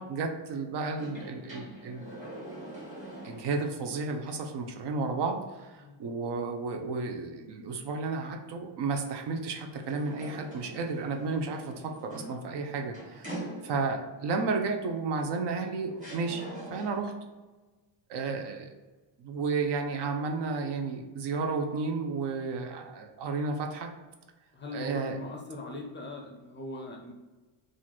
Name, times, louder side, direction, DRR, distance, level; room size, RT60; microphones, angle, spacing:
voice 1, 0.0-2.1 3.2-13.3 13.6-17.1 18.1-18.7 19.2-23.9 24.7-25.2, right 4 dB, 60° right, 4 dB, 0.6 m, -32 dB
sound 1, 0.9-3.8 4.3-4.4 9.7-14.1 15.2-15.3 16.0-17.2, right 1 dB, 15° right, 1.4 m, -44 dB
voice 2, 24.5-27.1, left 2 dB, 25° left, 0 dB, 0.4 m, -40 dB
2.9 x 2.5 x 4.0 m, 1.2 s
cardioid pair, 145°, 46 cm